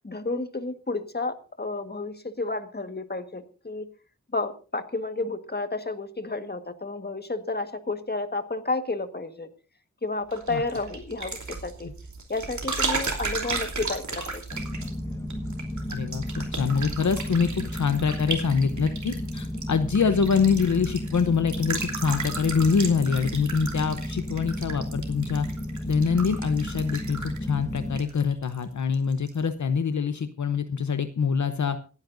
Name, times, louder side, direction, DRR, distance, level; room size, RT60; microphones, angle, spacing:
voice 1, 0.0-3.9 4.3-9.5 10.0-11.9 12.3-14.4, left 3 dB, 30° left, 8 dB, 1.7 m, -31 dB
sound 1, 10.3-28.6 28.9-29.4, right 4 dB, 65° right, 3.0 m, -35 dB
sound 2, 14.5-28.0, left 1 dB, 10° left, 1.1 m, -33 dB
voice 2, 15.9-25.5 25.8-31.8, left 5 dB, 65° left, 9 dB, 0.9 m, -25 dB
26.5 x 9.7 x 2.7 m, 0.36 s
wide cardioid pair, 65°, 31 cm